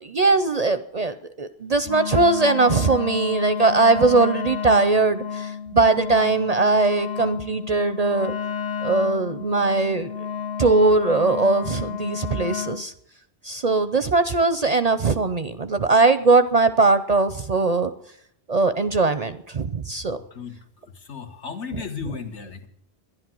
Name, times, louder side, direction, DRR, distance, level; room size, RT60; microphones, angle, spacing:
voice 1, 0.0-8.3 8.8-10.1 10.6-12.9 13.4-17.9 18.5-20.2, right 3 dB, 45° right, 12 dB, 0.6 m, -20 dB
Wind instrument woodwind instrument, 1.8-12.9, left 7 dB, 45° left, 0.8 m, -31 dB
voice 2, 20.9-22.7, left 6 dB, 75° left, 4 dB, 1.8 m, -35 dB
12.0 x 11.0 x 7.6 m, 0.69 s
omnidirectional pair, 1.2 m